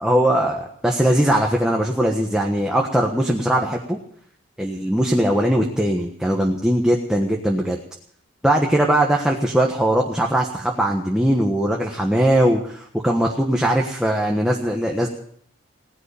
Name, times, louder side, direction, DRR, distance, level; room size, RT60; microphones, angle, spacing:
voice 1, 0.0-4.0 4.6-7.8 8.4-15.1, right 1 dB, 5° right, 0 dB, 1.3 m, -20 dB
17.5 x 11.0 x 7.0 m, 0.63 s
head